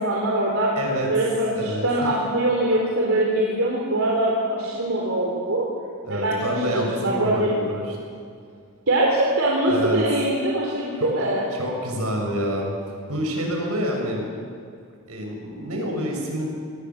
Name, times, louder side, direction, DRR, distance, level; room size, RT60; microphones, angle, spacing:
voice 1, 0.0-0.7 1.1-5.6 6.1-6.4 6.7-7.5 8.9-11.5, right 1 dB, 65° right, -3 dB, 4.1 m, -22 dB
voice 2, 0.8-1.1 1.5-2.1 6.0-8.0 9.7-10.0 11.0-12.7 13.1-14.3 15.1-16.5, equal, 80° right, 0 dB, 7.2 m, -27 dB
26.5 x 20.0 x 7.5 m, 2.3 s
head